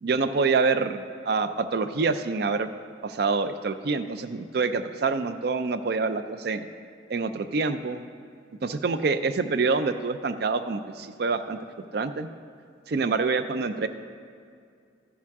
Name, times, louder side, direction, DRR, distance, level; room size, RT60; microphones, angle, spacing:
voice 1, 0.0-2.7 3.0-6.6 7.1-8.0 8.6-11.6 11.9-12.3 12.9-13.9, right 4 dB, 55° right, 11 dB, 0.4 m, -26 dB
14.0 x 7.1 x 3.6 m, 2.3 s
head